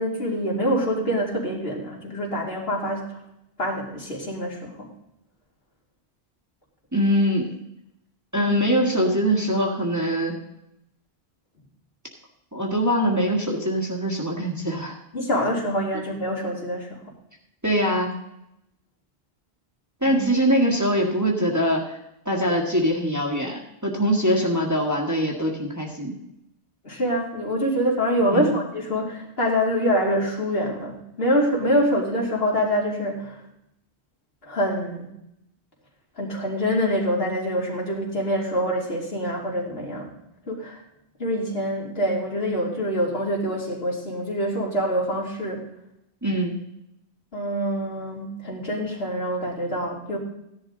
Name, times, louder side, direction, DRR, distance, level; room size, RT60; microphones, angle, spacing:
voice 1, 0.0-3.2 3.6-4.9 15.1-17.0 20.0-20.2 26.8-33.4 34.4-35.1 36.2-40.1 40.5-40.8 41.2-45.6 47.3-50.2, equal, 60° left, -3 dB, 3.1 m, -25 dB
voice 2, 6.9-7.5 8.3-10.4 12.5-14.9 15.9-16.0 17.6-18.2 20.0-22.0 22.3-26.1 28.3-28.5 46.2-46.6, equal, 15° right, -2 dB, 1.7 m, -23 dB
15.0 x 11.0 x 3.8 m, 0.82 s
omnidirectional pair, 1.1 m